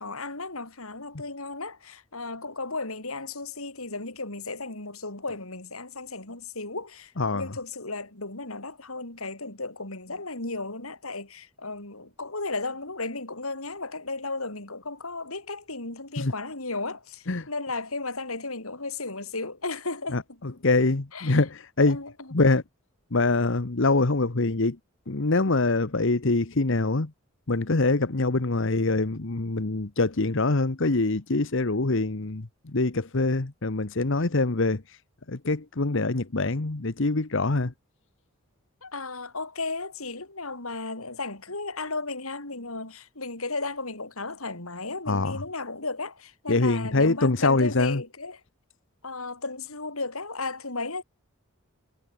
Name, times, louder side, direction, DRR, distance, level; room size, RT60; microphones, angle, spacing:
voice 1, 0.0-20.4 21.1-21.4 21.8-22.3 38.8-48.4 49.0-51.0, left 3 dB, 85° left, 6.9 m, -35 dB
voice 2, 7.2-7.5 16.2-16.3 17.3-17.5 20.1-22.0 22.3-22.6 23.1-24.8 25.1-27.1 27.5-34.8 35.3-37.7 45.1-45.4 46.5-48.0, left 3 dB, 60° left, 1.2 m, -24 dB
head